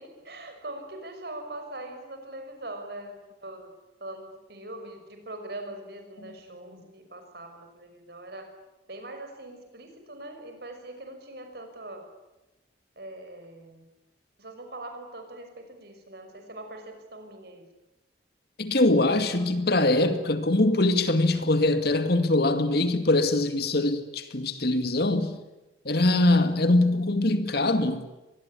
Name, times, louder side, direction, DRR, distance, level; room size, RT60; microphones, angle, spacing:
voice 1, 0.0-3.7 4.0-8.5 8.9-12.0 13.0-13.8 14.4-17.6 19.3-19.6 20.1-20.2, right 1 dB, 60° right, 5.9 m, -42 dB
voice 2, 18.6-25.4 25.9-28.1, left 2 dB, 60° left, 2.2 m, -23 dB
24.5 x 20.5 x 9.9 m
head